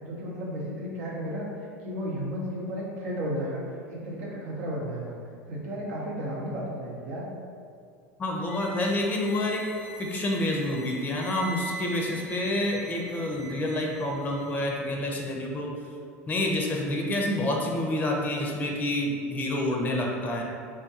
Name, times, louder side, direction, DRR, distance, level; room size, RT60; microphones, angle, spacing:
voice 1, 0.0-5.1 5.5-7.3, equal, 70° right, -4 dB, 0.8 m, -33 dB
voice 2, 8.2-9.6 10.0-15.7 16.3-20.4, left 1 dB, 20° left, 0 dB, 0.5 m, -28 dB
sound 1, 8.5-14.8, right 1 dB, 85° left, 0.4 m, -42 dB
3.4 x 2.2 x 2.8 m, 2.3 s
hypercardioid pair, 85°, 8 cm